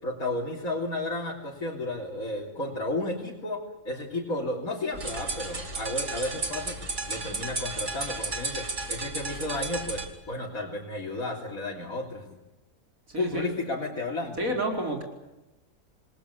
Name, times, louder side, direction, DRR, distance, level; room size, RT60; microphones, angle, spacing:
voice 1, 0.0-12.4 13.2-14.5, left 2 dB, 80° left, -4 dB, 4.0 m, -33 dB
sound 1, 4.9-10.1, right 3 dB, 55° right, 3.2 m, -33 dB
voice 2, 13.1-13.5 14.4-15.0, right 1 dB, 80° right, 3 dB, 5.2 m, -30 dB
28.0 x 20.0 x 8.4 m, 1.0 s
omnidirectional pair, 1.4 m